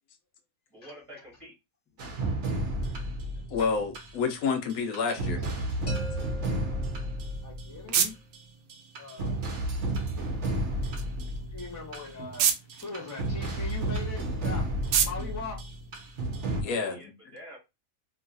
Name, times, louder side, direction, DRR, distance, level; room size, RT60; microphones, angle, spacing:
voice 1, 0.7-1.5 16.6-17.6, equal, 25° right, 1.2 m, -48 dB
sound 1, 2.0-4.4 4.7-8.4 8.7-16.6, right 1 dB, 55° right, 1.0 m, -32 dB
voice 2, 3.5-5.4 8.0-8.1 16.6-17.0, left 5 dB, 75° left, 1.0 m, -29 dB
sound 2, 5.9-7.7, right 1 dB, 45° left, 0.4 m, -43 dB
sound 3, 7.1-16.5, right 7 dB, 80° right, 1.1 m, -34 dB
voice 3, 7.4-8.0 8.9-9.5 10.8-10.9 11.5-15.8, left 3 dB, 15° left, 0.7 m, -41 dB
3.0 x 2.6 x 2.5 m
omnidirectional pair, 1.6 m